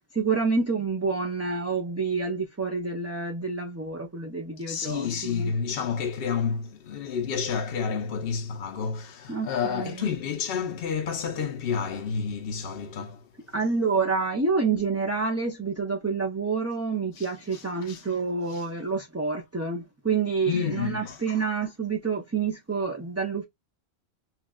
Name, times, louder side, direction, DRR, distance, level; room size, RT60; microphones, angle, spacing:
voice 1, 0.1-5.5 9.3-10.1 13.5-23.5, right 4 dB, 20° right, 0.5 m, -28 dB
voice 2, 4.7-13.2 17.2-18.0 18.5-18.7 20.5-21.2, left 6 dB, 65° left, 0.8 m, -30 dB
5.8 x 2.4 x 2.2 m
omnidirectional pair, 1.1 m